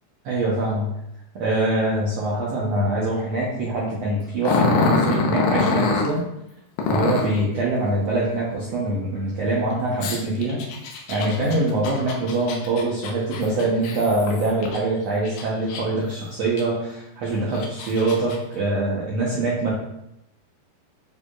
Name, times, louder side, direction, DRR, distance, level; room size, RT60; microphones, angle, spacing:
voice 1, 0.2-0.9 1.3-6.2 6.9-10.6 11.1-19.7, right 2 dB, 90° right, -5 dB, 1.4 m, -24 dB
Growling, 4.4-6.1 6.8-7.4 10.0-14.8 15.2-16.1 16.6-16.7 17.3-18.4, left 4 dB, 75° left, 2.5 m, -24 dB
9.3 x 4.7 x 2.4 m, 0.83 s
omnidirectional pair, 4.5 m